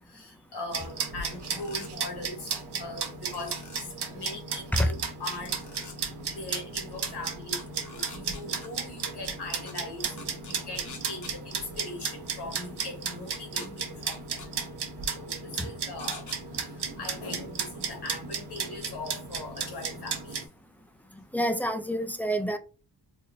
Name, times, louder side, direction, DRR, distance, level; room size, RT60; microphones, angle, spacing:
voice 1, 0.1-5.6 6.4-7.6 7.9-14.4 15.1-16.2 16.7-20.4, left 2 dB, 70° left, 1.5 m, -40 dB
sound 1, 0.7-20.4, right 6 dB, 70° right, 0.9 m, -35 dB
sound 2, 1.2-1.9 3.3-3.8 5.4-6.0 7.6-8.7 9.7-9.8 10.2-11.3 12.8-12.9 13.3-13.7 14.1-14.5 16.0-16.4, left 4 dB, 45° left, 0.9 m, -46 dB
voice 2, 21.3-22.6, equal, 5° left, 0.3 m, -27 dB
4.0 x 2.9 x 2.5 m
wide cardioid pair, 95°, 41 cm